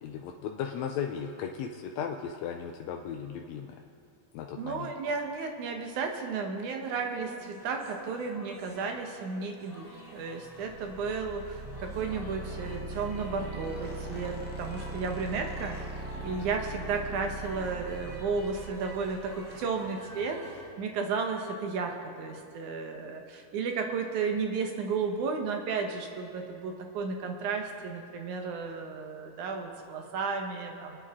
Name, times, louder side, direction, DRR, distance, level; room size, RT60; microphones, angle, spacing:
voice 1, 0.0-3.8 4.3-4.9, left 7 dB, 75° left, 2 dB, 1.8 m, -36 dB
voice 2, 4.6-15.8 16.1-20.4 20.8-31.0, right 4 dB, 85° right, 3 dB, 2.6 m, -33 dB
sound 1, 7.0-20.7, equal, 20° left, 3.8 m, -49 dB
sound 2, 10.6-19.5, right 2 dB, 5° right, 0.9 m, -40 dB
26.0 x 10.0 x 3.7 m, 2.5 s
omnidirectional pair, 3.4 m